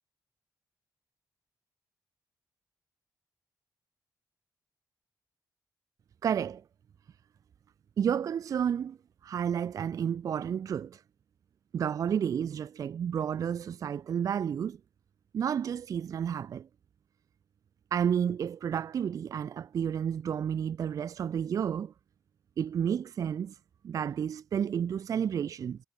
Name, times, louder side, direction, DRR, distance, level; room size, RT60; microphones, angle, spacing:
voice 1, 6.2-6.6 8.0-9.0 9.2-11.0 11.7-14.8 15.3-16.7 17.9-21.9 22.6-23.5 23.8-25.8, right 8 dB, 55° right, 0.3 m, -31 dB
wide cardioid pair, 145°, 7 cm